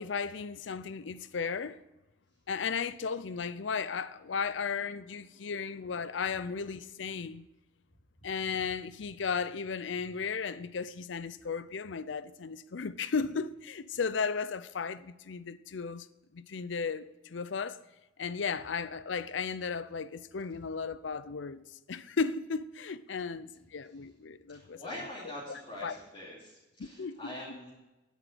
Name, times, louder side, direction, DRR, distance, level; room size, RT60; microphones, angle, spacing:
voice 1, 0.0-1.8 2.5-7.4 8.2-16.1 16.3-17.8 18.2-24.8 25.5-26.0 26.8-27.2, left 5 dB, 75° left, 0.5 m, -35 dB
voice 2, 24.5-27.7, left 1 dB, 30° left, 2.6 m, -44 dB
10.0 x 8.1 x 9.0 m
head